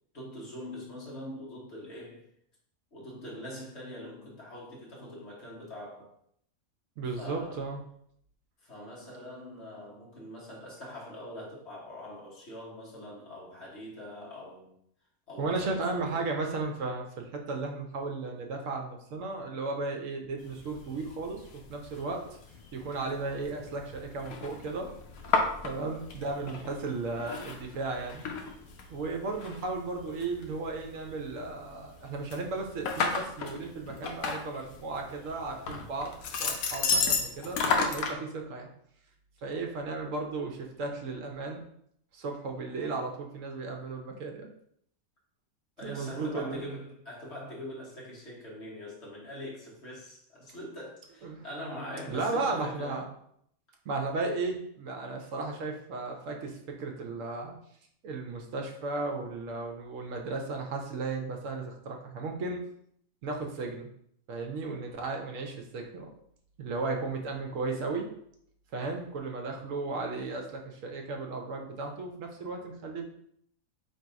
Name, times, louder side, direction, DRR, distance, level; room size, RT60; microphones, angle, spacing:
voice 1, 0.1-2.3 2.9-6.1 7.2-7.7 8.6-14.7 15.3-16.3 45.8-53.1, equal, 50° left, -5 dB, 1.4 m, -43 dB
voice 2, 7.0-7.8 15.4-21.4 21.7-22.2 22.7-24.9 25.6-28.3 28.9-38.7 39.4-41.6 42.1-44.5 45.8-46.6 51.2-51.4 52.1-53.0 53.8-57.5 58.0-62.6 63.2-63.9 64.3-66.1 66.6-68.1 68.7-73.1, right 3 dB, 65° right, 2 dB, 1.0 m, -35 dB
sound 1, 20.4-38.1, left 4 dB, 75° left, 1.1 m, -34 dB
3.3 x 2.7 x 4.6 m, 0.69 s
omnidirectional pair, 1.5 m